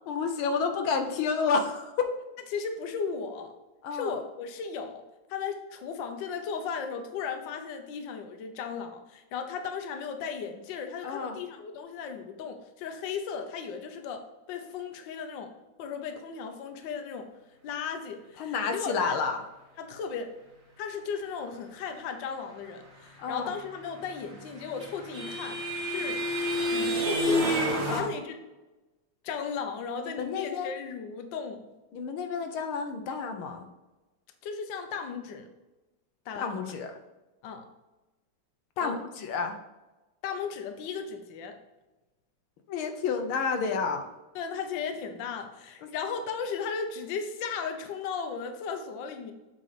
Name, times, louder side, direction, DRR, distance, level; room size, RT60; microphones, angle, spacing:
voice 1, 0.1-2.1 3.8-4.1 11.0-11.4 18.4-19.4 23.2-23.5 27.9-28.1 30.2-30.7 31.9-33.7 36.4-36.9 38.8-39.6 42.7-44.1 45.8-45.9, left 5 dB, 85° left, 5 dB, 1.7 m, -30 dB
voice 2, 2.5-3.5 3.9-5.0 5.3-15.5 15.8-17.3 17.6-19.2 19.8-20.3 20.8-25.6 25.9-26.2 26.7-28.3 29.2-31.7 34.4-35.5 36.3-36.6 37.4-37.7 38.8-39.0 40.2-41.6 44.3-49.3, left 6 dB, 70° left, 6 dB, 1.5 m, -36 dB
sound 1, 24.1-28.0, equal, 35° right, 2.1 m, -29 dB
7.8 x 3.9 x 5.0 m, 1.1 s
omnidirectional pair, 2.2 m